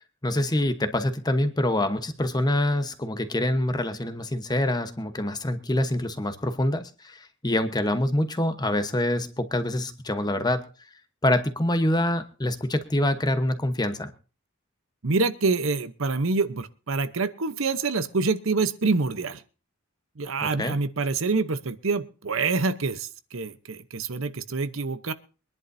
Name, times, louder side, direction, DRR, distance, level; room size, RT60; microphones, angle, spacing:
voice 1, 0.2-10.7 11.2-14.1 20.6-20.8, left 1 dB, 20° left, 9 dB, 1.1 m, -25 dB
voice 2, 15.0-19.4 20.2-25.1, right 4 dB, 65° right, 12 dB, 0.9 m, -26 dB
24.0 x 11.0 x 2.7 m, 0.35 s
head